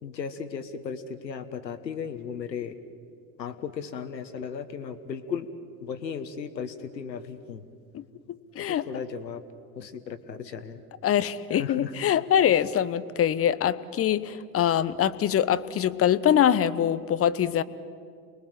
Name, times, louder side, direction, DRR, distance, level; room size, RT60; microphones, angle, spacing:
voice 1, 0.0-2.7 3.4-5.5 5.8-7.6 8.6-9.4 9.8-10.8 11.5-11.9, left 6 dB, 80° left, 11 dB, 1.5 m, -36 dB
voice 2, 11.0-17.6, left 10 dB, 25° left, 16 dB, 1.0 m, -23 dB
29.5 x 21.5 x 7.5 m, 2.3 s
figure-of-eight pair, 75°, 50 cm